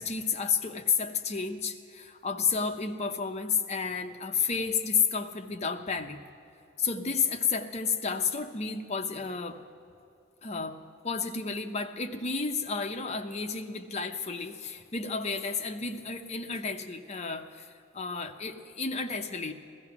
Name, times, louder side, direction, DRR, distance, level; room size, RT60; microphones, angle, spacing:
voice 1, 0.0-6.2 6.8-9.6 10.4-10.8 11.0-19.5, left 5 dB, 35° left, 5 dB, 0.8 m, -31 dB
16.0 x 14.0 x 5.9 m, 2.6 s
head